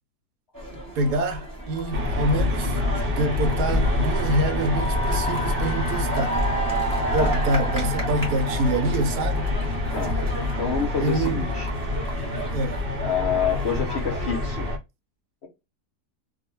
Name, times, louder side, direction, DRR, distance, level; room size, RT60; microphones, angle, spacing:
sound 1, 0.5-14.8, right 1 dB, 15° right, 0.8 m, -31 dB
voice 1, 1.0-6.5 7.1-9.5 11.0-11.4 12.5-12.8, right 2 dB, 75° right, 1.1 m, -26 dB
sound 2, 1.8-1.9 2.3-2.8 3.1-3.2 3.5-4.0 4.3-4.4 4.8-5.5 5.8-6.0 6.3-6.5 6.9-7.1 7.3-7.4 7.6-7.8 8.2-8.4 8.7-8.9 9.2-9.3 9.6-9.8 10.0-10.5 10.8-10.9 11.2-11.4 11.6-12.2, left 2 dB, 20° left, 1.0 m, -44 dB
sound 3, 1.9-14.8, left 2 dB, 50° right, 0.7 m, -27 dB
voice 2, 10.6-11.7 13.0-14.7, left 7 dB, 55° left, 0.7 m, -27 dB
2.6 x 2.1 x 2.9 m
omnidirectional pair, 1.7 m